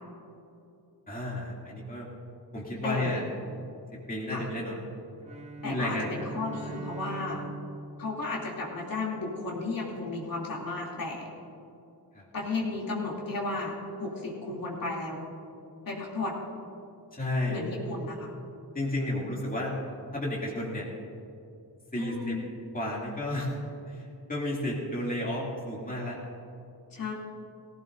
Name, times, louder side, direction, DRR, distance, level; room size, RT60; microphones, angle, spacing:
voice 1, 1.1-2.1 2.5-3.3 4.1-4.8 5.6-6.1 6.6-6.8 12.1-12.3 17.1-17.6 18.7-19.7 20.1-20.9 21.9-22.4 22.7-23.6 23.8-26.2, left 1 dB, 20° left, -4 dB, 2.6 m, -32 dB
voice 2, 2.8-3.2 4.3-4.4 5.6-7.4 8.0-11.3 12.3-15.3 15.8-16.4 17.5-18.3 22.0-22.4 26.9-27.1, left 3 dB, 55° left, -4 dB, 3.0 m, -34 dB
Bowed string instrument, 5.2-9.4, right 3 dB, 15° right, 1.0 m, -43 dB
19.0 x 16.5 x 2.7 m, 2.7 s
wide cardioid pair, 105°, 41 cm